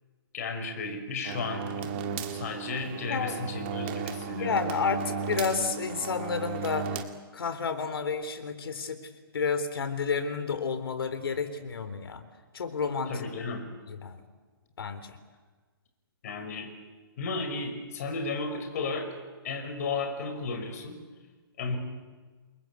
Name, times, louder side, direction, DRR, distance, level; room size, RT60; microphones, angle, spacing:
voice 1, 0.3-1.9 2.3-4.6 13.1-13.7 16.2-16.7 17.2-21.0 21.6-21.8, left 3 dB, 40° left, 6 dB, 5.2 m, -34 dB
sound 1, 1.2-7.0, right 5 dB, 25° right, 1.9 m, -35 dB
voice 2, 4.4-6.9 7.3-9.0 9.3-12.2 12.5-13.3 13.9-14.2 14.8-15.2, left 5 dB, 70° left, 11 dB, 3.7 m, -30 dB
29.0 x 22.0 x 8.4 m, 1.4 s
hypercardioid pair, 165°, 13 cm